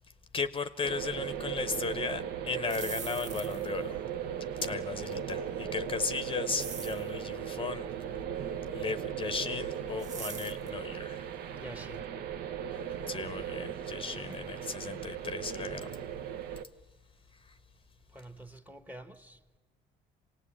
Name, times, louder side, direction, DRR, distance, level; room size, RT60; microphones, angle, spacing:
voice 1, 0.3-4.0 4.6-7.9 8.7-11.3 12.7-12.8 13.1-16.0 17.5-17.6, left 5 dB, 30° left, 0.7 m, -36 dB
sound 1, 0.8-16.6, right 8 dB, 75° right, 0.9 m, -37 dB
sound 2, 2.7-3.8 6.6-7.1 10.0-10.7, right 5 dB, 45° right, 1.3 m, -42 dB
voice 2, 11.5-12.1 14.1-14.4 18.1-19.4, right 1 dB, 10° right, 1.0 m, -47 dB
25.5 x 18.0 x 8.5 m
cardioid pair, 110°, 17 cm